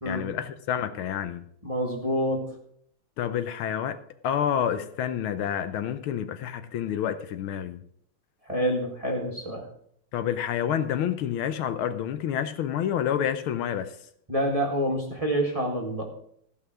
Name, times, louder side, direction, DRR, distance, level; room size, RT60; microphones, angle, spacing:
voice 1, 0.1-1.4 3.2-4.0 4.2-7.8 10.1-13.9, left 9 dB, 75° left, 10 dB, 1.5 m, -28 dB
voice 2, 1.6-2.5 8.5-9.7 14.3-16.0, equal, 15° right, 0 dB, 1.7 m, -27 dB
15.0 x 5.7 x 6.1 m, 0.68 s
omnidirectional pair, 2.4 m